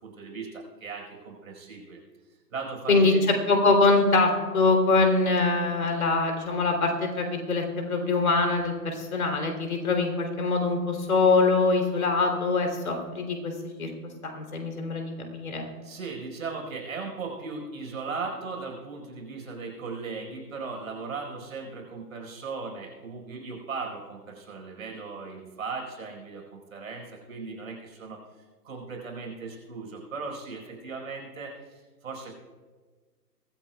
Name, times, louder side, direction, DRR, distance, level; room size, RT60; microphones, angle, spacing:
voice 1, 0.0-2.0 2.5-3.2 15.8-28.2 28.6-32.4, right 4 dB, 55° right, 1 dB, 4.8 m, -37 dB
voice 2, 3.5-13.9 14.2-15.7, left 3 dB, 55° left, 3 dB, 3.3 m, -24 dB
23.0 x 14.0 x 2.3 m, 1.4 s
figure-of-eight pair, 145°, 49 cm